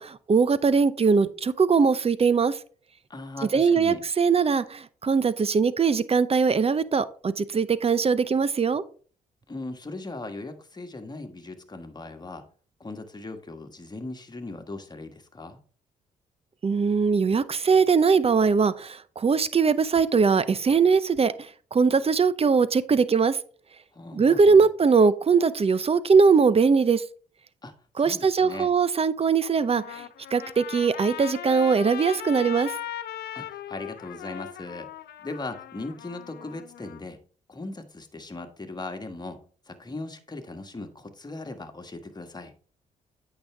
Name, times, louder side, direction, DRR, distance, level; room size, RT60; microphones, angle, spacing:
voice 1, 0.0-2.6 3.5-8.8 16.6-23.4 24.1-27.0 28.0-30.1 30.3-32.7, right 5 dB, 35° right, 16 dB, 0.7 m, -21 dB
voice 2, 3.1-4.0 9.5-12.4 12.8-15.6 23.9-24.7 27.6-28.7 33.3-34.9 35.2-37.2 37.5-42.5, left 2 dB, 25° left, 6 dB, 1.6 m, -38 dB
Trumpet, 29.5-37.0, left 11 dB, 65° left, 0.6 m, -39 dB
8.7 x 6.1 x 3.5 m, 0.41 s
hypercardioid pair, 55°, 18 cm